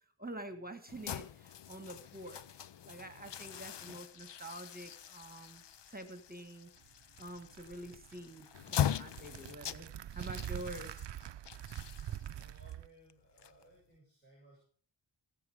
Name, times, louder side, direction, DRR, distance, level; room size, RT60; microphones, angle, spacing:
voice 1, 0.2-2.4 2.8-6.7 7.2-11.0, right 1 dB, 20° right, 9 dB, 1.5 m, -47 dB
sound 1, 0.9-14.0, left 10 dB, 65° left, 0.6 m, -42 dB
sound 2, 6.8-12.9, right 11 dB, 65° right, 0.6 m, -45 dB
voice 2, 12.3-14.6, right 1 dB, 20° left, -3 dB, 7.2 m, -62 dB
21.0 x 7.4 x 4.9 m, 0.44 s
wide cardioid pair, 85°, 45 cm